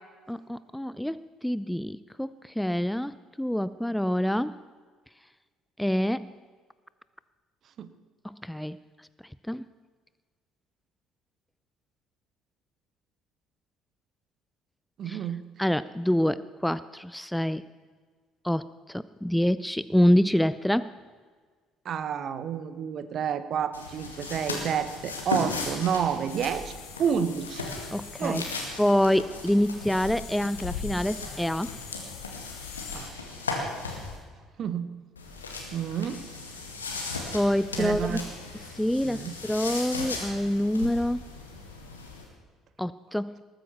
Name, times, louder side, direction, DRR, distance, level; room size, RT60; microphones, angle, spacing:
voice 1, 0.3-4.5 5.8-6.3 8.2-8.8 9.5-9.6 15.1-15.2 15.6-17.6 18.4-20.9 27.9-28.4 28.8-31.7 37.3-38.2 38.7-41.2 42.8-43.4, equal, 5° left, 16 dB, 0.4 m, -26 dB
voice 2, 15.0-15.4 21.8-26.7 27.0-27.6 28.2-28.5 32.9-33.1 34.6-35.0 35.7-36.2 37.8-38.2 39.0-39.3, right 8 dB, 45° right, 13 dB, 1.1 m, -29 dB
sound 1, 23.7-34.2 35.1-42.2, left 3 dB, 80° left, 2.1 m, -37 dB
sound 2, 26.3-33.0, left 6 dB, 65° left, 2.3 m, -42 dB
20.0 x 9.4 x 7.0 m, 1.6 s
figure-of-eight pair, 55°, 0 cm